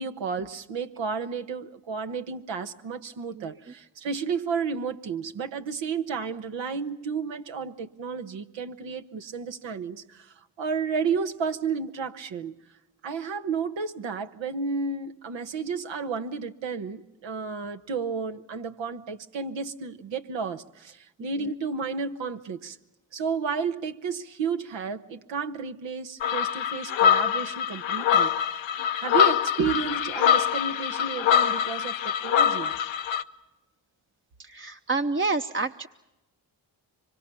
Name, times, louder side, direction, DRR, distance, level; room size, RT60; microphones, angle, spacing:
voice 1, 0.0-12.6 13.0-22.8 23.1-28.6 29.0-32.7, right 5 dB, 80° right, 1.2 m, -32 dB
voice 2, 21.2-21.5 34.4-35.9, right 3 dB, 25° right, 0.9 m, -29 dB
sound 1, 26.2-33.2, left 9 dB, 85° left, 0.8 m, -24 dB
25.0 x 24.0 x 6.9 m
supercardioid pair, 45°, 45 cm